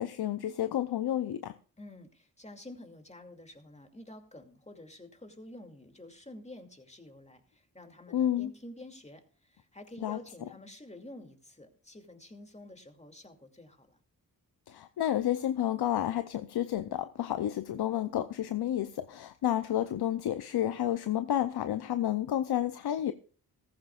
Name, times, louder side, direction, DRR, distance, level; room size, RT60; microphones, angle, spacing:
voice 1, 0.0-1.6 8.1-8.5 10.0-10.2 14.7-23.1, left 11 dB, 85° left, 0.6 m, -30 dB
voice 2, 1.8-14.0, left 1 dB, 20° left, 2.5 m, -49 dB
15.0 x 14.0 x 2.4 m
cardioid pair, 50°, 38 cm